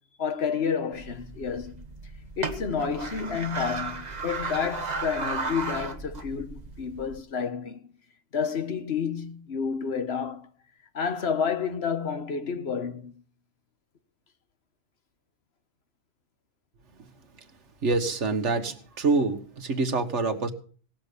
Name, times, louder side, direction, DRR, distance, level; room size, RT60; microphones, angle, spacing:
voice 1, 0.2-1.7 2.4-7.9 8.3-10.5 10.9-13.1, left 6 dB, 55° left, 1.4 m, -30 dB
sound 1, 0.9-7.2, right 3 dB, 35° right, 1.3 m, -35 dB
voice 2, 17.8-20.5, right 3 dB, 65° right, 1.8 m, -26 dB
18.0 x 7.4 x 6.8 m
omnidirectional pair, 1.3 m